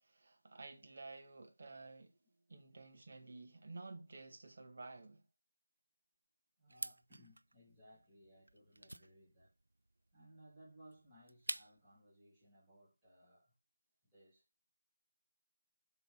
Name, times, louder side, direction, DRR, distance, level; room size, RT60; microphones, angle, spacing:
voice 1, 0.0-2.2 2.5-5.2, right 3 dB, 50° right, 1.9 m, -52 dB
voice 2, 6.6-9.5 10.1-13.5 14.0-14.5, right 1 dB, 10° right, 3.0 m, -63 dB
sound 1, 6.7-12.0, right 2 dB, 80° right, 0.4 m, -48 dB
6.7 x 4.0 x 5.0 m
figure-of-eight pair, 165°, 0 cm